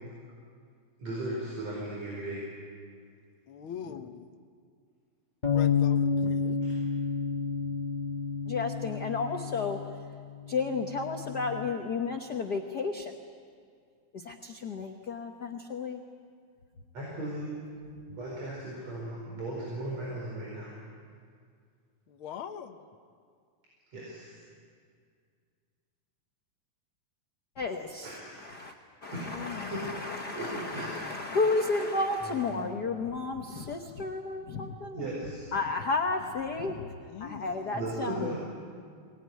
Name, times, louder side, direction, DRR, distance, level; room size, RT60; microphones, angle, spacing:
voice 1, 1.0-2.5 6.6-6.7 16.9-17.5 18.2-20.8 23.9-24.4 28.0-28.5 29.1-31.1 32.2-32.6 33.5-33.6 34.9-35.5 37.7-38.4, right 1 dB, 55° right, -4 dB, 5.9 m, -37 dB
voice 2, 3.5-4.3 5.5-6.6 22.1-22.9 29.2-29.9 37.0-37.8, left 8 dB, 65° left, 6 dB, 1.3 m, -42 dB
sound 1, 5.4-11.7, left 6 dB, 25° left, 0.9 m, -30 dB
voice 3, 8.5-9.8 10.5-13.2 14.1-16.0 27.6-28.7 29.0-35.0 35.5-36.9 37.2-38.3, left 3 dB, 90° left, 4 dB, 0.8 m, -32 dB
24.0 x 19.5 x 9.5 m, 2.1 s
omnidirectional pair, 3.7 m